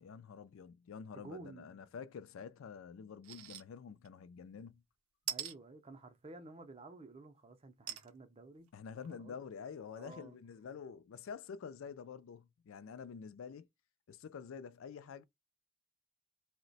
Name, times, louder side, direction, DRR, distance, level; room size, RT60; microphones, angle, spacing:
voice 1, 0.0-4.8 8.7-13.7 14.1-15.2, left 6 dB, 65° left, 0.3 m, -48 dB
voice 2, 1.1-1.8 5.3-8.7 9.1-9.4 9.9-10.4, right 2 dB, 30° right, 0.5 m, -52 dB
sound 1, 3.2-3.6 4.0-4.1 5.3-5.5 7.9-8.1 8.7-8.8 9.0-9.1, right 11 dB, 85° right, 0.5 m, -41 dB
2.8 x 2.1 x 4.0 m
head